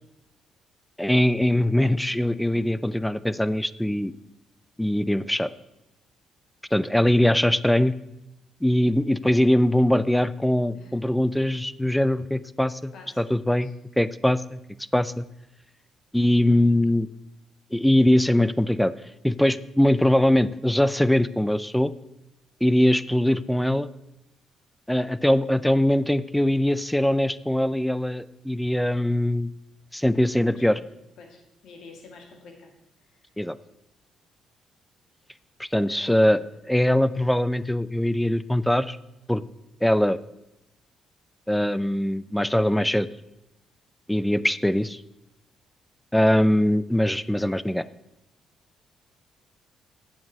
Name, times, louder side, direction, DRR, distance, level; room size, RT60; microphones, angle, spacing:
voice 1, 1.0-4.1 4.8-5.5 6.7-7.9 8.6-13.7 14.0-14.6 14.9-15.2 16.1-17.1 17.7-18.9 19.2-21.9 22.6-23.9 24.9-29.5 29.9-30.8 33.4-33.6 35.6-36.4 36.7-39.0 39.3-39.4 39.8-40.2 41.5-43.1 44.1-45.0 46.1-47.8, left 1 dB, 5° left, 17 dB, 0.4 m, -22 dB
voice 2, 12.9-13.7 28.9-29.2 30.5-30.8 31.2-32.7 33.1-33.3 35.8-36.4, left 4 dB, 75° left, 4 dB, 2.0 m, -48 dB
8.7 x 7.4 x 5.4 m, 0.89 s
cardioid pair, 90°, 0 cm